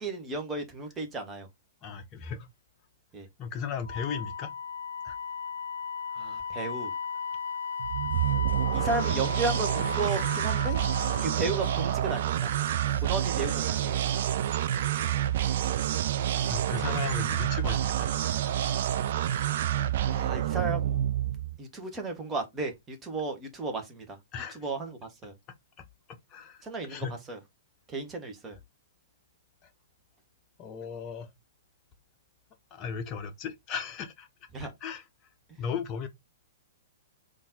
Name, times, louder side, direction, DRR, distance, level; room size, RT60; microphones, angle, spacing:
voice 1, 0.0-1.5 3.1-3.3 6.1-6.9 8.7-10.8 11.2-12.5 13.0-14.0 20.1-21.0 21.6-24.2 24.5-25.3 26.6-27.4 27.9-28.6 34.5-34.7, right 3 dB, 15° right, 1.0 m, -34 dB
voice 2, 1.8-2.5 3.4-4.5 5.0-5.2 16.5-18.1 24.3-24.7 26.3-27.2 29.6-29.7 30.6-31.3 32.7-34.3 34.6-35.1 35.6-36.1, left 6 dB, 30° left, 0.6 m, -36 dB
Wind instrument woodwind instrument, 3.8-12.1, left 6 dB, 65° left, 0.3 m, -36 dB
sound 1, 7.8-21.6, right 11 dB, 50° right, 0.3 m, -28 dB
sound 2, 8.1-13.6, right 1 dB, 80° right, 0.8 m, -50 dB
3.8 x 2.5 x 3.9 m
figure-of-eight pair, 110°, 0 cm